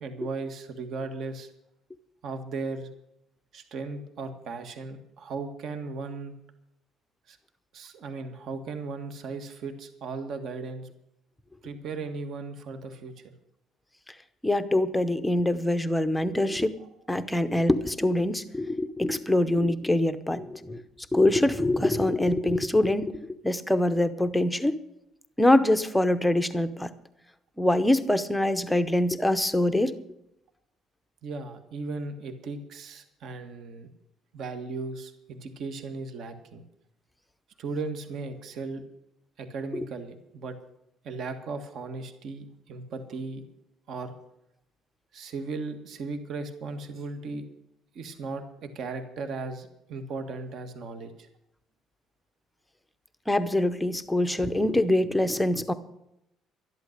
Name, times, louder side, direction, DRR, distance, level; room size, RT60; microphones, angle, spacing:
voice 1, 0.0-1.5 2.2-2.9 3.5-6.3 7.3-7.4 7.7-10.9 11.6-13.2 16.8-16.9 31.2-33.9 34.3-36.6 37.6-38.8 39.4-40.6 41.0-43.5 43.9-44.1 45.1-47.4 48.0-51.3, right 4 dB, 45° right, 8 dB, 1.6 m, -36 dB
voice 2, 14.4-16.8 17.1-20.8 21.1-24.8 25.4-26.9 27.6-29.9 39.7-39.8 53.3-55.7, left 1 dB, 5° left, 10 dB, 0.8 m, -24 dB
12.0 x 11.5 x 6.6 m, 0.81 s
cardioid pair, 175°, 0 cm